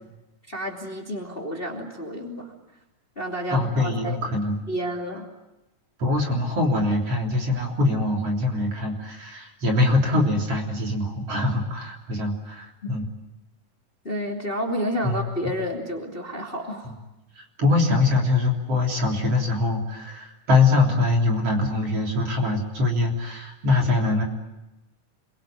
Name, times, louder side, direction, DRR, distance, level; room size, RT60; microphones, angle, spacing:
voice 1, 0.5-2.5 3.2-4.2 4.7-5.3 12.8-12.9 14.0-16.9, equal, 15° left, 1 dB, 2.7 m, -30 dB
voice 2, 3.5-4.6 6.0-13.0 15.0-15.2 16.8-16.9 17.4-24.2, left 3 dB, 45° right, 0 dB, 4.4 m, -23 dB
28.0 x 23.0 x 9.1 m, 1.0 s
omnidirectional pair, 3.8 m